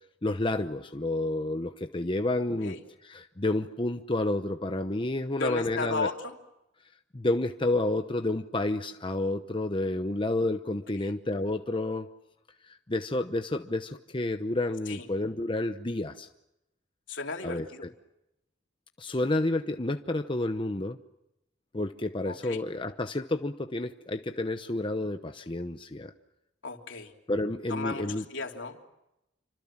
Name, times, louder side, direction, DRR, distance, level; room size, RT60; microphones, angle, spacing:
voice 1, 0.2-2.8 3.0-6.1 7.1-12.1 12.7-16.3 17.4-17.7 19.0-21.0 21.7-26.1 27.3-28.2, left 2 dB, 25° left, 7 dB, 0.9 m, -30 dB
voice 2, 5.3-6.4 11.0-11.1 14.9-15.1 17.1-17.9 22.2-22.6 26.6-27.1 27.7-28.8, left 3 dB, 80° left, 3 dB, 3.2 m, -35 dB
28.0 x 25.5 x 7.3 m, 0.89 s
head